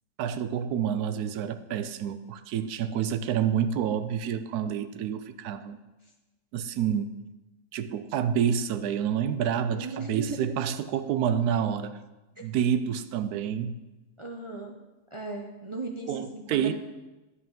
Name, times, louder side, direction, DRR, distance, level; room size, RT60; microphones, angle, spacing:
voice 1, 0.2-5.8 6.5-7.2 7.7-12.0 12.4-13.8 16.1-16.7, right 8 dB, 80° right, 12 dB, 1.1 m, -28 dB
voice 2, 9.7-10.4 12.4-12.5 14.2-14.7 15.1-16.7, right 3 dB, 35° right, 1 dB, 0.4 m, -37 dB
10.0 x 5.6 x 5.3 m, 1.1 s
omnidirectional pair, 1.6 m